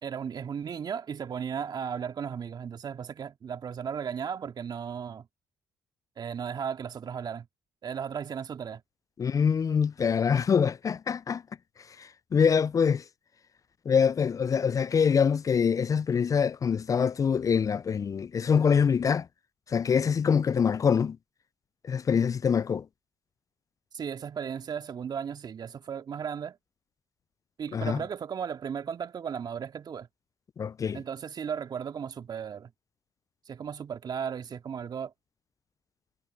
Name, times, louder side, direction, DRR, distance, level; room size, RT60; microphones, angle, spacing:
voice 1, 0.0-5.3 6.2-7.5 7.8-8.8 23.9-26.6 27.6-30.1 30.9-32.7 33.5-35.1, right 7 dB, 50° right, 2.4 m, -35 dB
voice 2, 9.2-11.4 12.0-13.0 13.9-19.3 19.7-21.2 21.8-22.8 27.7-28.0 30.6-31.0, left 6 dB, 40° left, 0.5 m, -25 dB
hypercardioid pair, 45°, 9 cm